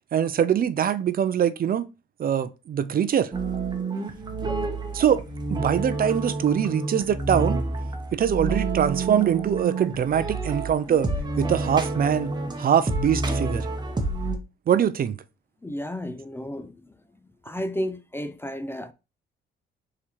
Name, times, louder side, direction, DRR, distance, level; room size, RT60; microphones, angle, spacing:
voice 1, 0.1-1.9 2.2-3.3 4.9-5.2 5.5-7.6 8.1-11.1 11.4-13.7 14.7-15.1, right 9 dB, 45° right, 0.5 m, -23 dB
sound 1, 3.3-14.4, right 3 dB, 20° right, 1.0 m, -28 dB
voice 2, 15.6-16.8 17.4-18.9, equal, 10° left, 0.4 m, -32 dB
4.2 x 3.8 x 3.2 m
cardioid pair, 90°, 20 cm